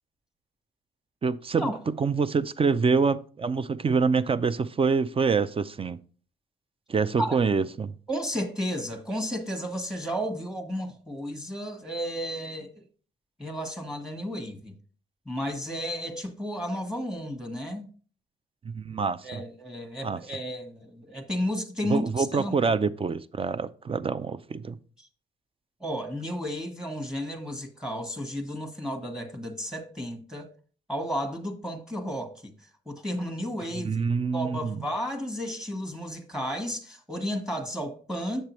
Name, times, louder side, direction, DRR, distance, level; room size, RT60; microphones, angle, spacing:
voice 1, 1.2-1.7 2.0-6.0 6.9-7.9 18.6-19.4 20.0-20.2 21.9-24.8 33.8-34.8, right 5 dB, 30° right, 0.5 m, -26 dB
voice 2, 8.1-12.8 13.4-14.7 15.3-17.9 19.2-22.6 25.0-25.1 25.8-30.5 30.9-32.5 32.9-34.0 34.3-38.5, equal, 5° right, 1.2 m, -33 dB
7.5 x 6.7 x 3.0 m
cardioid pair, 90°, 20 cm